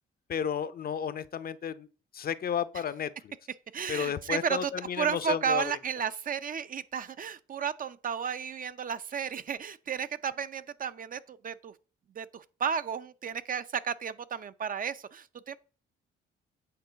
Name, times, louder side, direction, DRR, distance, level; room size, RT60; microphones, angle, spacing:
voice 1, 0.3-1.9 2.1-3.1 3.9-5.6, left 8 dB, 50° left, 0.7 m, -32 dB
voice 2, 3.7-4.7 5.0-11.7 12.1-15.6, right 7 dB, 45° right, 0.7 m, -33 dB
8.6 x 3.8 x 6.9 m
cardioid pair, 90°, 20 cm